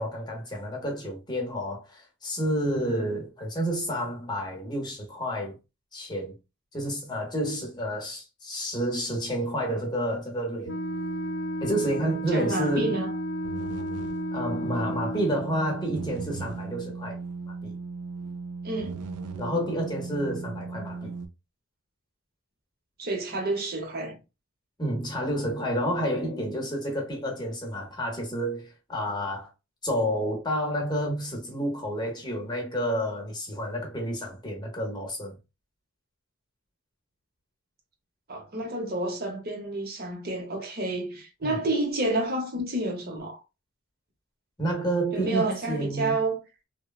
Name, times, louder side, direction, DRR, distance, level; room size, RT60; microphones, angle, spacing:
voice 1, 0.0-5.5 5.9-6.3 6.7-10.8 11.6-13.0 14.3-17.2 17.6-17.8 19.4-21.1 24.8-29.5 29.8-35.4 41.4-41.6 44.6-46.2, equal, 20° left, 0.7 m, -30 dB
Wind instrument woodwind instrument, 10.7-15.5, left 1 dB, 55° left, 0.4 m, -33 dB
sound 1, 10.7-21.3, right 4 dB, 85° right, 0.4 m, -37 dB
voice 2, 12.3-13.1 18.6-19.0 23.0-24.2 38.3-43.4 45.1-46.4, right 2 dB, 45° right, 0.7 m, -29 dB
3.0 x 2.1 x 2.2 m
head